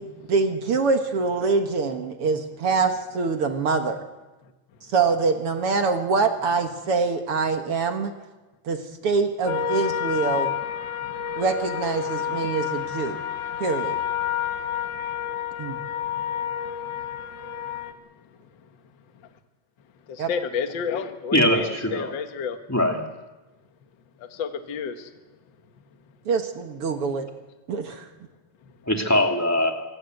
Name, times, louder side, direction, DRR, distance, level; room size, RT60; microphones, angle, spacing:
voice 1, 0.0-4.0 4.9-8.1 8.6-10.5 11.4-13.2 13.6-14.0 15.6-15.8 20.2-20.3 26.3-27.2 27.7-28.1, right 4 dB, 50° right, 6 dB, 2.0 m, -24 dB
sound 1, 9.5-17.9, left 9 dB, 75° left, 2.5 m, -29 dB
voice 2, 11.0-11.4 14.4-15.2 15.8-17.7 18.6-18.7 20.1-22.6 24.2-25.1 28.6-28.7, left 6 dB, 50° left, 7 dB, 1.6 m, -33 dB
voice 3, 21.3-22.1 22.7-23.0 28.9-29.7, left 1 dB, 5° left, 2 dB, 1.9 m, -21 dB
25.0 x 19.0 x 7.9 m, 1.1 s
omnidirectional pair, 3.8 m